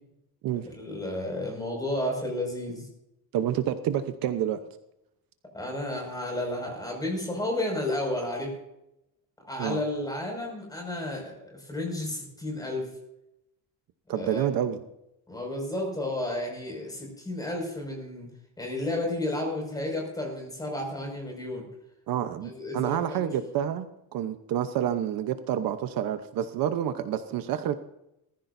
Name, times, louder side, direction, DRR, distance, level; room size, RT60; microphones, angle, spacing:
voice 1, 0.8-2.9 5.5-8.5 9.4-12.9 14.1-14.4 15.3-18.3 18.6-21.7 22.4-23.3, left 1 dB, 10° left, 0 dB, 5.8 m, -32 dB
voice 2, 3.3-4.6 9.6-9.8 14.1-14.8 22.1-23.9 24.1-27.7, right 10 dB, 60° right, 9 dB, 1.0 m, -28 dB
20.5 x 14.5 x 2.7 m, 0.86 s
cardioid pair, 170°, 38 cm